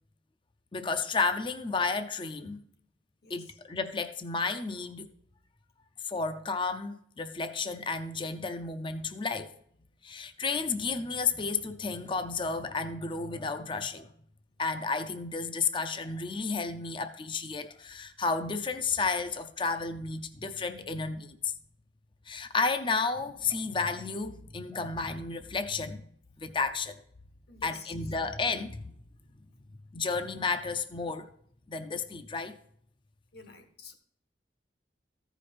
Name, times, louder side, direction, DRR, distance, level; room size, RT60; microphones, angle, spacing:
voice 1, 0.7-2.6 3.3-5.1 6.0-9.5 10.0-14.1 14.6-21.5 22.3-26.1 26.4-27.0 27.6-28.9 29.9-31.3 31.7-32.5, left 4 dB, 30° left, 0.6 m, -32 dB
voice 2, 27.5-27.9 33.3-33.9, left 4 dB, 60° left, 1.2 m, -48 dB
14.5 x 5.1 x 4.2 m
head